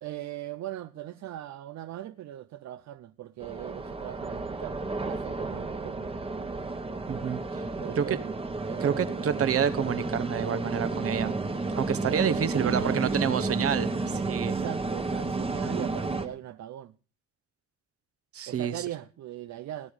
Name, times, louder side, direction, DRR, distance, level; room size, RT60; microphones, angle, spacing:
voice 1, 0.0-4.8 5.1-6.1 7.8-8.4 8.6-9.4 12.1-13.7 14.2-16.9 18.5-19.9, right 12 dB, 65° right, 0.7 m, -39 dB
sound 1, 3.4-16.3, right 3 dB, 20° right, 1.3 m, -32 dB
voice 2, 7.1-7.4 8.0-8.2 8.8-11.3 11.8-14.5 18.3-18.8, right 8 dB, 45° right, 1.2 m, -28 dB
18.5 x 9.2 x 5.0 m
cardioid pair, 140°, 31 cm